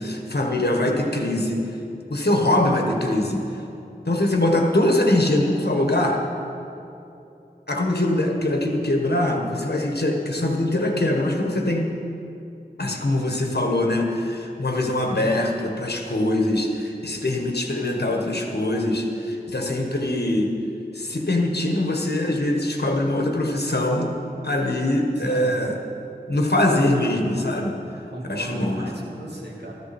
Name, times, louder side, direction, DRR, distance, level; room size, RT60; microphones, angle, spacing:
voice 1, 0.0-1.6 2.1-3.4 4.1-6.2 7.7-11.9 12.8-20.5 20.9-24.1 24.4-25.8 26.3-27.8 28.2-28.9, left 1 dB, 70° left, 2 dB, 1.5 m, -23 dB
voice 2, 25.1-25.5 28.1-29.7, right 1 dB, 80° right, -3 dB, 2.1 m, -35 dB
14.0 x 13.5 x 4.4 m, 2.8 s
wide cardioid pair, 45°, 17 cm